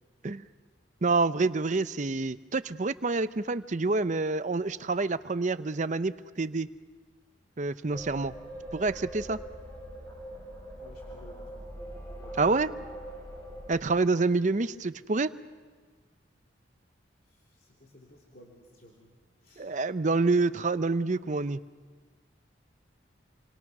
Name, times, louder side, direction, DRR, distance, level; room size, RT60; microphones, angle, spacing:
voice 1, 1.0-6.7 7.6-8.3 8.7-9.4 12.4-12.7 13.7-15.3 19.6-21.6, right 3 dB, 40° right, 13 dB, 0.6 m, -27 dB
sound 1, 7.9-13.7, right 1 dB, 20° left, 4.5 m, -42 dB
voice 2, 10.8-11.7 12.2-12.9 13.8-14.7 17.2-19.1 19.4-19.8, left 1 dB, 50° left, -3 dB, 3.3 m, -56 dB
28.5 x 24.5 x 6.0 m, 1.5 s
head